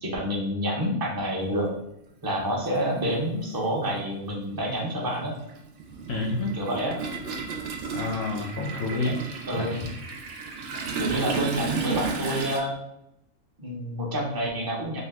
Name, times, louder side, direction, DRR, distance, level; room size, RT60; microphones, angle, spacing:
voice 1, 0.0-1.7 2.2-5.3 6.5-7.0 8.9-9.2 9.5-9.8 11.0-12.7 13.6-15.0, equal, 25° right, -3 dB, 0.4 m, -28 dB
Toilet flush, 2.1-2.2 3.5-3.6 4.0-12.6, right 4 dB, 65° right, 0.8 m, -33 dB
voice 2, 6.1-6.6 7.9-9.2 9.5-9.9, left 3 dB, 65° left, -2 dB, 0.7 m, -29 dB
2.8 x 2.1 x 3.5 m, 0.81 s
omnidirectional pair, 1.4 m